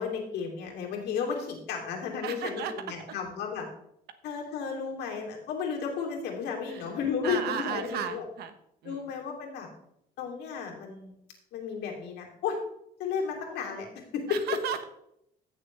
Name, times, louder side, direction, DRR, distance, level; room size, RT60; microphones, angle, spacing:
voice 1, 0.0-3.7 4.2-8.2 8.8-9.7 10.2-11.1 11.5-12.6 13.0-13.9 14.1-14.2, left 6 dB, 85° left, 1 dB, 3.0 m, -33 dB
voice 2, 2.2-3.1 6.7-6.9 7.2-8.5 8.8-9.1 14.3-14.8, right 9 dB, 70° right, 9 dB, 1.1 m, -35 dB
15.0 x 6.7 x 3.3 m, 0.76 s
cardioid pair, 110°, 17 cm